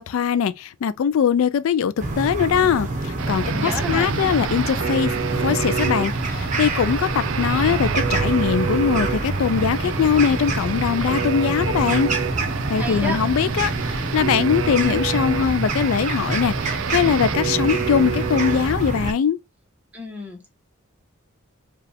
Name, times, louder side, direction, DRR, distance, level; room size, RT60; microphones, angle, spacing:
voice 1, 0.0-5.1 5.4-12.1 12.7-19.4, left 7 dB, 75° left, 0.3 m, -21 dB
sound 1, 2.0-19.1, right 2 dB, 35° right, 0.9 m, -26 dB
sound 2, 3.2-18.7, right 7 dB, 65° right, 0.4 m, -29 dB
voice 2, 3.4-4.1 12.7-13.2 19.9-20.5, equal, 5° right, 1.1 m, -30 dB
4.7 x 2.4 x 3.4 m
head